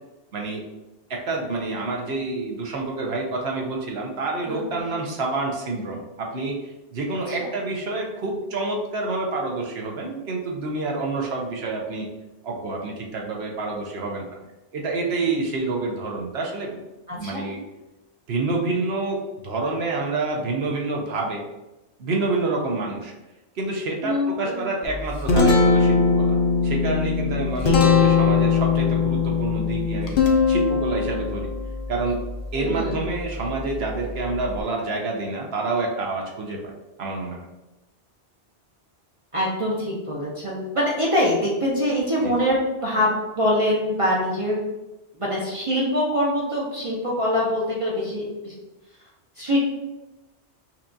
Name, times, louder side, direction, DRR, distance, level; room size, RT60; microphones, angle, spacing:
voice 1, 1.1-12.1 12.4-14.3 14.7-16.8 17.1-17.6 18.3-21.4 22.0-23.1 23.5-26.4 26.6-30.2 30.5-31.5 31.9-32.2 32.5-36.7 37.0-37.5 42.2-42.3, right 3 dB, 65° right, 0 dB, 0.9 m, -28 dB
voice 2, 4.5-4.8 7.3-7.4 17.1-17.4 24.0-24.6 27.6-28.1 32.5-33.0 39.3-44.6 45.2-48.5 49.4-49.6, left 1 dB, 35° right, -5 dB, 0.6 m, -24 dB
Guitar, 24.8-34.6, left 5 dB, 60° left, 0.7 m, -22 dB
5.6 x 2.3 x 2.6 m, 1.0 s
omnidirectional pair, 1.2 m